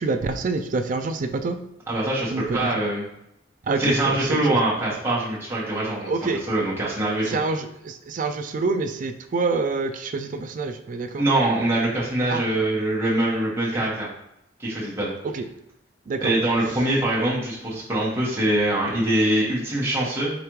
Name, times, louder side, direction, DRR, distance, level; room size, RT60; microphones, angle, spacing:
voice 1, 0.0-1.6 2.3-2.6 3.6-4.6 6.0-6.4 7.3-11.2 12.3-12.4 15.2-15.4 16.1-16.3, right 3 dB, 45° right, 7 dB, 0.3 m, -26 dB
voice 2, 1.9-3.0 3.8-7.4 11.2-14.1 14.6-15.1 16.2-20.3, right 1 dB, 15° right, -7 dB, 1.3 m, -23 dB
5.0 x 3.3 x 3.1 m, 0.82 s
head